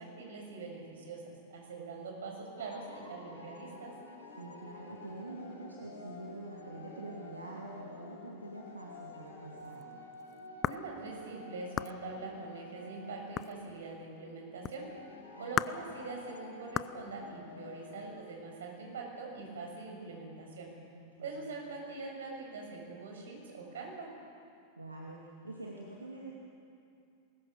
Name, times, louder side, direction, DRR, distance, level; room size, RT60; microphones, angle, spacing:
voice 1, 0.0-3.9 10.6-14.9 15.4-20.7 21.2-24.1, right 3 dB, 60° right, 1 dB, 6.5 m, -43 dB
sound 1, 2.6-18.1, left 3 dB, 85° left, 6.2 m, -50 dB
voice 2, 4.4-9.8 15.3-15.8 20.9-21.5 24.8-26.3, right 2 dB, 80° right, -2 dB, 2.5 m, -46 dB
sound 2, 9.3-9.4 9.6-11.1 11.8-12.0 13.3-13.8 14.6-14.8 15.6-15.9 16.7-17.0, left 11 dB, 30° left, 0.5 m, -35 dB
23.5 x 21.0 x 7.0 m, 2.5 s
figure-of-eight pair, 90°, 0 cm